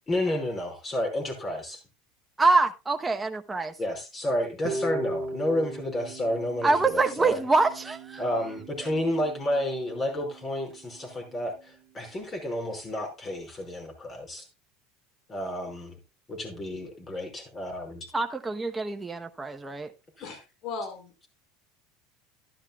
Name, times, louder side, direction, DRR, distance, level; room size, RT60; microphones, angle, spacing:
voice 1, 0.1-1.8 3.8-7.4 8.2-14.5 15.3-16.0 16.3-18.1, left 1 dB, 30° left, 2 dB, 5.2 m, -31 dB
voice 2, 2.4-3.7 6.6-8.2 8.8-8.9 18.1-19.9, right 3 dB, 15° right, 5 dB, 0.9 m, -25 dB
Harp, 4.6-10.7, right 2 dB, 75° right, 1.0 m, -38 dB
voice 3, 20.2-21.3, left 4 dB, 55° left, 6 dB, 4.6 m, -38 dB
12.5 x 11.5 x 2.3 m, 0.26 s
supercardioid pair, 105°, 0 cm